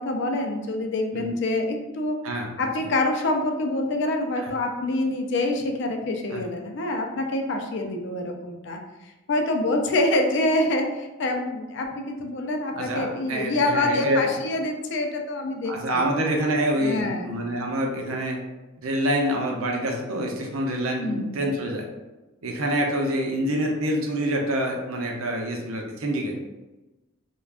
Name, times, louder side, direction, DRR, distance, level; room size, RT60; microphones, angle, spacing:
voice 1, 0.0-2.2 2.6-8.8 9.3-16.0 16.8-17.3 21.0-21.5, left 2 dB, 55° left, 3 dB, 0.4 m, -26 dB
voice 2, 12.7-14.3 15.7-18.4 18.8-21.8 22.4-26.3, right 1 dB, 80° right, 1 dB, 0.6 m, -26 dB
2.4 x 2.2 x 3.4 m, 1.1 s
head